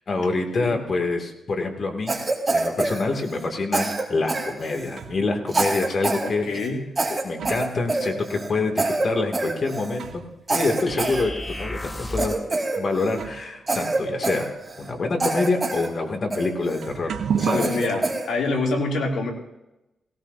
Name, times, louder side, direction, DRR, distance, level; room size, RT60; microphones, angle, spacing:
voice 1, 0.1-2.1 2.5-6.4 7.1-10.2 10.5-12.4 12.8-14.5 14.8-17.7, left 3 dB, 50° left, 3 dB, 2.4 m, -26 dB
Cough, 2.1-3.5 3.7-5.0 5.5-6.3 6.5-6.7 7.0-8.5 8.8-9.1 9.3-10.0 10.5-11.7 12.2-13.2 13.7-14.9 15.2-15.9 16.3-16.9 17.4-18.3, right 2 dB, 25° right, 3.7 m, -26 dB
sound 1, 4.4-5.4 6.3-6.4 7.0-10.5 10.8-10.9 11.7-11.8 12.7-12.8 13.1-18.0, right 7 dB, 80° right, 1.0 m, -34 dB
voice 2, 6.2-6.9 17.5-19.3, left 3 dB, 85° left, 0 dB, 2.9 m, -26 dB
sound 2, 10.9-12.5, left 1 dB, 20° left, 1.1 m, -33 dB
18.5 x 17.5 x 2.8 m, 0.94 s
cardioid pair, 85°, 0 cm